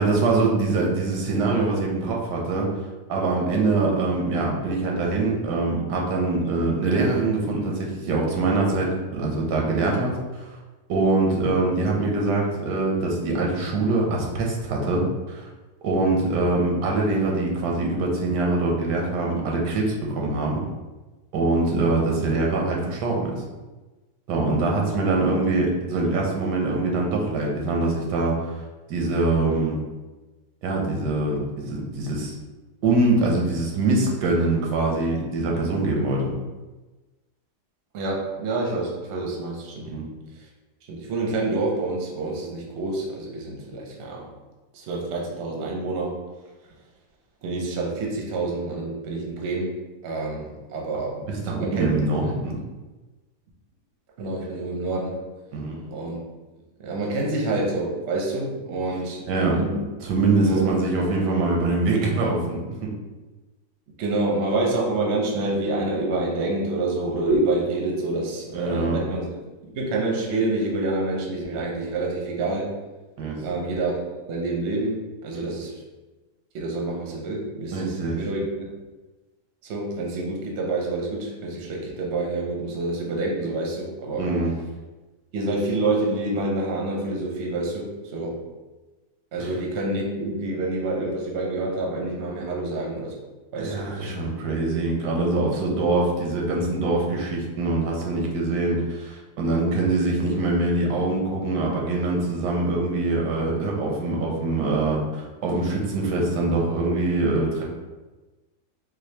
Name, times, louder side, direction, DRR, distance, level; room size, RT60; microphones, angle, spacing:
voice 1, 0.0-2.7 3.1-10.5 10.9-15.5 15.8-20.6 21.3-23.3 24.3-28.5 28.9-29.8 30.6-32.3 32.8-36.3 39.8-40.1 51.4-52.6 55.5-56.1 59.3-59.6 60.0-62.9 68.5-69.0 73.2-73.4 77.7-78.2 84.2-84.5 89.4-89.5 93.6-107.6, right 2 dB, 85° right, -1 dB, 1.3 m, -23 dB
voice 2, 37.9-40.0 40.9-44.3 44.7-46.2 47.4-49.7 50.0-51.2 51.5-51.9 52.2-52.3 54.2-55.2 55.9-56.2 56.8-59.9 60.3-60.7 64.0-69.3 69.6-72.7 73.4-73.9 74.3-75.7 76.5-78.7 79.6-84.2 85.3-88.4 89.3-93.2 93.5-94.1, right 2 dB, 55° right, -1 dB, 0.8 m, -27 dB
4.1 x 2.6 x 2.7 m, 1.2 s
omnidirectional pair, 1.8 m